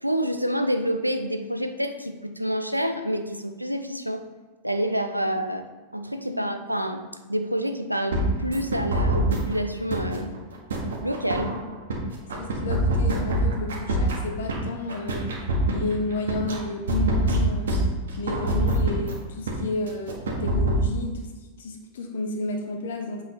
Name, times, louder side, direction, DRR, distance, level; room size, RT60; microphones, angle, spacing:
voice 1, 0.0-4.2 4.6-5.6 5.9-7.0 7.3-10.3 11.0-11.5, equal, 90° right, 7 dB, 0.6 m, -27 dB
sound 1, 8.1-9.5 9.9-12.0 12.3-14.6 14.9-16.6 16.9-19.1 19.5-19.6 19.9-20.9, equal, 65° right, 1.6 m, -25 dB
voice 2, 12.2-15.3 15.7-17.9 18.2-21.3 21.6-23.2, left 2 dB, 60° left, 3 dB, 1.3 m, -31 dB
7.9 x 5.1 x 3.9 m, 1.3 s
figure-of-eight pair, 90°, 0 cm